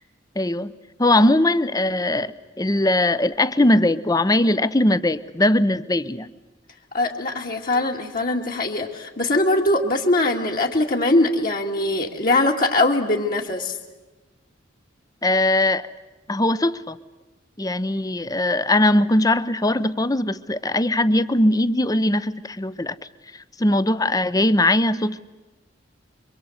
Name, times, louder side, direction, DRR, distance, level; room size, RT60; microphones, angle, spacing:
voice 1, 0.4-0.7 1.0-6.3 15.2-15.9 16.3-17.0 17.6-23.0 23.6-25.2, left 1 dB, 20° left, 14 dB, 0.8 m, -20 dB
voice 2, 6.9-13.8, left 2 dB, 50° left, 0 dB, 2.3 m, -21 dB
26.5 x 24.5 x 8.0 m, 1.1 s
head